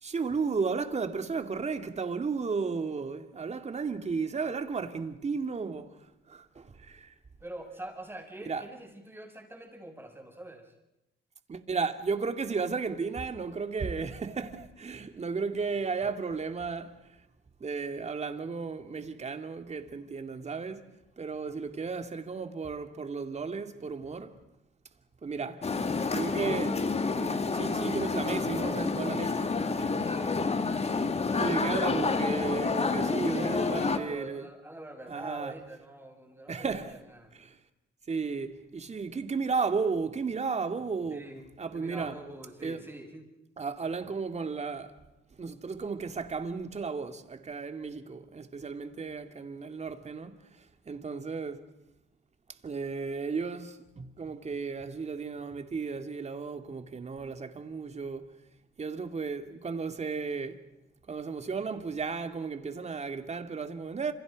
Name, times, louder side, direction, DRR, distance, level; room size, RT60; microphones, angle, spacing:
voice 1, 0.0-6.0 6.3-7.1 8.5-8.6 11.5-17.0 17.6-20.9 21.2-24.4 25.2-25.7 26.1-26.8 27.2-30.1 31.4-34.5 35.1-35.5 36.5-37.0 37.3-37.6 38.1-41.3 41.6-42.1 42.6-42.8 43.6-44.9 45.4-50.4 50.9-51.6 52.6-58.3 58.8-60.6 61.1-64.1, right 5 dB, 35° right, 2.3 m, -34 dB
voice 2, 7.4-10.7 30.0-32.6 33.0-36.8 37.1-37.3 41.1-41.4 41.7-43.3, right 1 dB, 10° right, 7.0 m, -45 dB
sound 1, 25.6-34.0, left 4 dB, 30° left, 2.1 m, -29 dB
28.5 x 27.5 x 5.3 m
cardioid pair, 90°, 20 cm